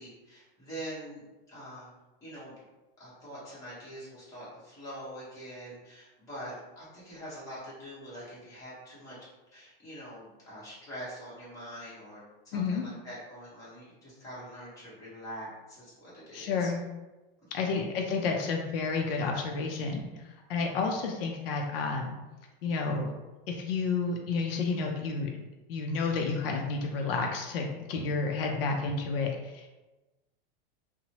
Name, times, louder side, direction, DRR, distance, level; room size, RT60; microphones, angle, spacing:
voice 1, 0.0-1.9 2.2-2.5 3.0-9.2 9.5-16.7 17.6-17.8, equal, 10° left, -10 dB, 1.0 m, -44 dB
voice 2, 12.5-12.8 16.3-16.8 17.5-20.1 20.5-22.1 22.6-23.1 23.5-25.3 25.7-29.7, left 4 dB, 75° left, 2 dB, 0.5 m, -30 dB
2.9 x 2.1 x 2.7 m, 1.1 s
supercardioid pair, 165°, 29 cm